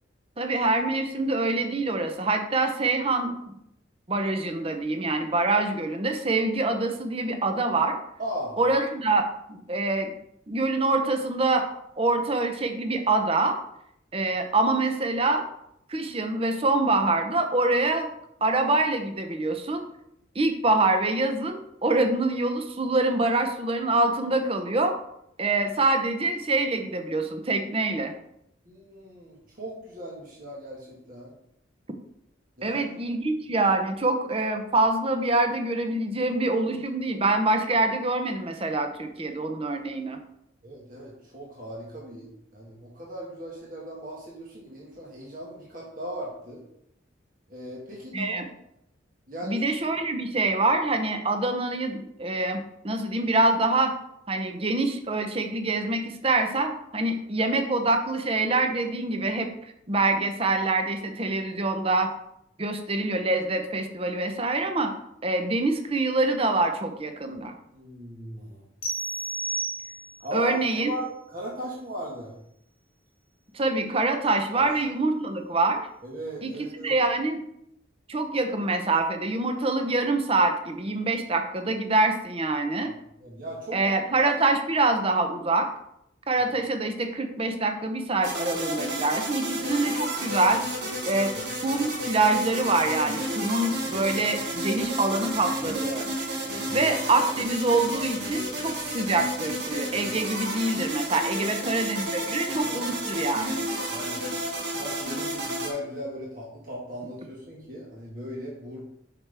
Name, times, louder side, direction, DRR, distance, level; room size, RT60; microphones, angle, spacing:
voice 1, 0.4-3.5 4.1-8.0 8.6-10.1 10.5-11.7 12.0-13.6 14.1-15.4 15.9-18.1 18.4-19.9 20.3-25.0 25.4-28.1 32.6-40.2 48.1-48.4 49.4-53.9 54.3-59.5 59.9-62.1 62.6-64.9 65.2-67.5 70.3-70.9 73.5-75.8 76.4-76.5 76.8-77.4 78.1-82.9 83.7-85.7 86.3-90.6 91.1-91.3 91.6-96.1 96.7-103.6, right 2 dB, 30° right, 6 dB, 0.7 m, -25 dB
voice 2, 8.2-8.6 28.7-31.3 32.6-32.8 40.6-42.3 42.5-46.6 47.5-48.4 49.3-49.6 67.7-68.6 70.2-72.3 74.5-74.7 76.0-76.9 83.2-83.8 96.7-96.9 101.3-101.8 102.2-102.9 103.9-104.3 104.6-108.8, equal, 45° right, -3 dB, 1.7 m, -37 dB
sound 1, 68.8-70.3, right 3 dB, 30° left, 1.4 m, -32 dB
sound 2, 88.2-105.7, right 1 dB, 60° right, 1.8 m, -32 dB
7.6 x 5.9 x 3.4 m, 0.76 s
head